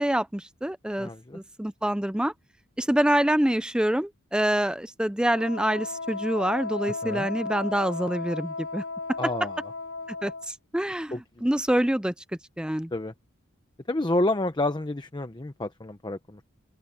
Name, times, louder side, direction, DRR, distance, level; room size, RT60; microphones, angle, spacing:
voice 1, 0.0-2.3 2.8-8.8 10.2-11.1 11.4-12.1 12.6-12.9, right 1 dB, 5° right, 0.5 m, -26 dB
voice 2, 1.0-1.4 7.0-7.3 9.2-9.6 11.1-11.2 12.9-13.1 13.9-16.4, left 2 dB, 20° left, 0.8 m, -29 dB
Wind instrument woodwind instrument, 5.3-10.5, left 3 dB, 90° left, 0.9 m, -35 dB
open air
head